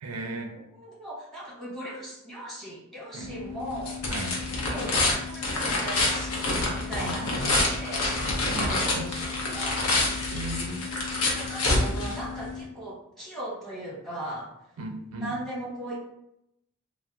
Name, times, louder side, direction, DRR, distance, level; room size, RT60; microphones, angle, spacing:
voice 1, 0.0-0.5 3.1-3.3 4.1-4.4 7.0-7.6 8.4-9.1 10.3-10.9 14.8-15.3, right 2 dB, 80° right, 4 dB, 0.4 m, -36 dB
voice 2, 0.5-4.0 4.7-8.1 8.6-9.8 10.7-10.9 11.3-14.5 15.2-16.0, right 1 dB, ahead, -7 dB, 1.0 m, -38 dB
sound 1, 3.2-12.6, left 2 dB, 80° left, 0.7 m, -28 dB
2.7 x 2.0 x 3.5 m, 0.82 s
head